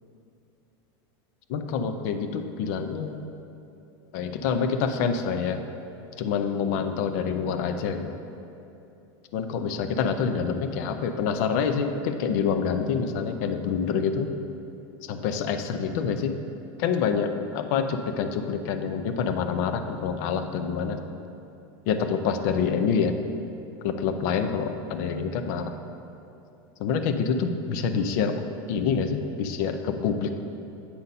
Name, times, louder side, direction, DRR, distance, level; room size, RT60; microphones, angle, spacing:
voice 1, 1.5-3.2 4.1-5.6 6.2-8.1 9.3-14.3 15.1-16.3 16.8-21.0 21.9-23.1 23.8-25.7 26.8-28.4 28.7-30.3, left 6 dB, 45° left, 7 dB, 0.5 m, -26 dB
8.5 x 4.0 x 5.4 m, 2.8 s
supercardioid pair, 170°, 13 cm